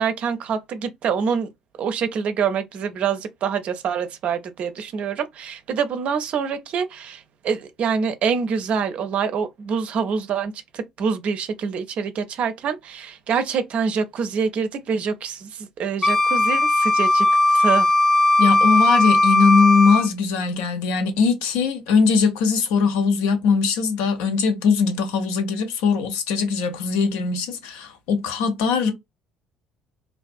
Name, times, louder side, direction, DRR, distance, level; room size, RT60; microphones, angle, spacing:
voice 1, 0.0-1.5 1.8-17.9, right 6 dB, 55° right, 0.5 m, -26 dB
Wind instrument woodwind instrument, 16.0-20.1, left 2 dB, 15° left, 0.4 m, -17 dB
voice 2, 18.4-28.9, left 5 dB, 70° left, 0.6 m, -20 dB
2.4 x 2.3 x 2.3 m
hypercardioid pair, 55°, 3 cm